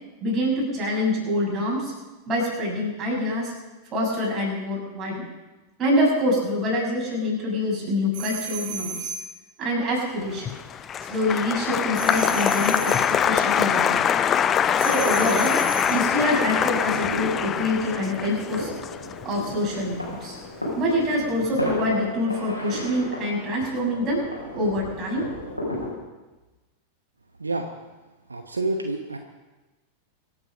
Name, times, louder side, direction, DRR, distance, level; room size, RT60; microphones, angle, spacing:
voice 1, 0.2-1.9 2.3-3.5 3.9-5.3 5.8-9.1 9.6-10.5 11.1-14.1 14.8-18.7 19.2-20.4 20.7-24.2 24.5-25.3, left 1 dB, 25° right, -3 dB, 6.5 m, -25 dB
sound 1, 8.1-9.3 11.9-13.1 14.8-16.0, right 5 dB, 50° right, 2.5 m, -33 dB
Applause, 10.3-20.7 21.0-21.6, left 8 dB, 25° left, 0.6 m, -24 dB
sound 2, 16.7-25.9, left 1 dB, 90° left, 4.6 m, -34 dB
voice 2, 28.3-29.2, right 2 dB, 80° right, 5 dB, 1.0 m, -28 dB
24.5 x 8.8 x 5.2 m, 1.1 s
figure-of-eight pair, 90°, 0 cm